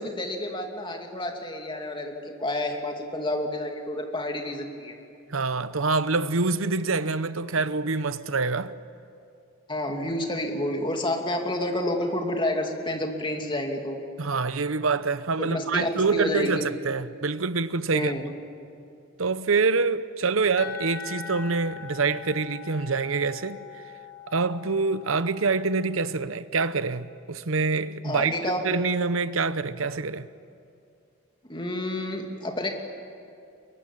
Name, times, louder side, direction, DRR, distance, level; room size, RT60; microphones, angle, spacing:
voice 1, 0.0-5.0 9.7-14.0 15.4-16.6 17.9-18.2 28.0-28.6 31.5-32.7, left 1 dB, 25° left, 2.6 m, -29 dB
voice 2, 5.3-8.7 14.2-18.1 19.2-23.6 24.3-28.3 28.6-30.3, right 4 dB, 75° right, 0.9 m, -26 dB
sound 1, 20.6-26.2, left 8 dB, 75° left, 1.9 m, -42 dB
23.5 x 22.0 x 10.0 m
head